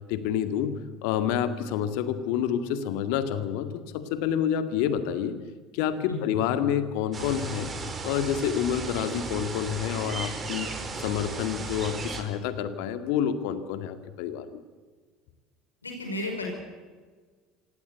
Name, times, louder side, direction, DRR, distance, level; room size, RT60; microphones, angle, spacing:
voice 1, 0.1-0.7 1.0-5.4 5.7-7.7 8.0-14.6, left 9 dB, 65° left, 10 dB, 2.0 m, -28 dB
sound 1, 7.1-12.2, right 4 dB, 30° right, 4.3 m, -35 dB
voice 2, 15.8-16.5, left 2 dB, 90° left, 2 dB, 5.3 m, -33 dB
26.5 x 17.0 x 8.2 m, 1.5 s
figure-of-eight pair, 65°, 0 cm